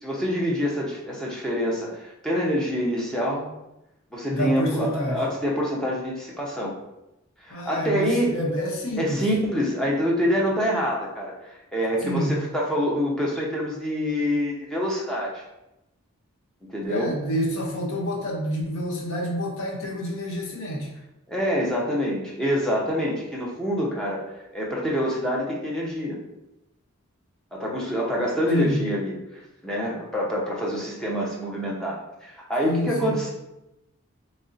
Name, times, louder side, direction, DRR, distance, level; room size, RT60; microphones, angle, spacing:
voice 1, 0.0-3.5 4.1-6.7 7.4-8.3 9.0-15.4 16.7-17.1 21.3-24.2 24.5-26.2 27.5-29.2 29.6-33.3, equal, 5° left, -4 dB, 0.6 m, -26 dB
voice 2, 4.3-5.2 7.5-9.2 12.0-12.4 16.9-20.9 28.5-28.8 32.6-33.2, equal, 65° left, -2 dB, 0.7 m, -28 dB
3.2 x 2.6 x 3.8 m, 0.91 s
head